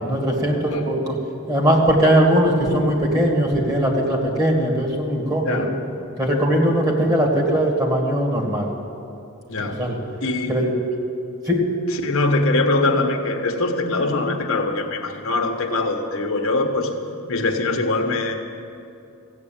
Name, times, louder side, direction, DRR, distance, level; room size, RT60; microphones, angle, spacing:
voice 1, 0.0-1.2 1.5-5.6 6.2-8.7 9.6-10.0 10.5-10.7 11.4-11.6, equal, 15° right, -1 dB, 2.2 m, -20 dB
voice 2, 10.2-10.5 11.9-17.0 17.3-18.4, left 2 dB, 65° left, 2 dB, 1.2 m, -22 dB
15.0 x 8.5 x 8.7 m, 2.6 s
head